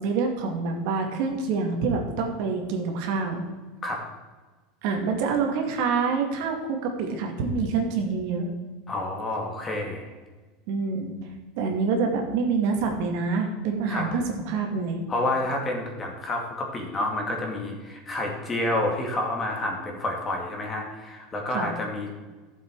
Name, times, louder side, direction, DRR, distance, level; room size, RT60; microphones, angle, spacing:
voice 1, 0.0-3.4 4.8-8.5 10.7-11.3 11.6-15.0 21.5-21.7, right 4 dB, 60° right, 2 dB, 2.1 m, -26 dB
voice 2, 8.9-10.1 13.9-14.0 15.1-22.1, left 1 dB, 20° left, 1 dB, 2.1 m, -29 dB
12.5 x 7.4 x 4.7 m, 1.3 s
supercardioid pair, 150°, 0 cm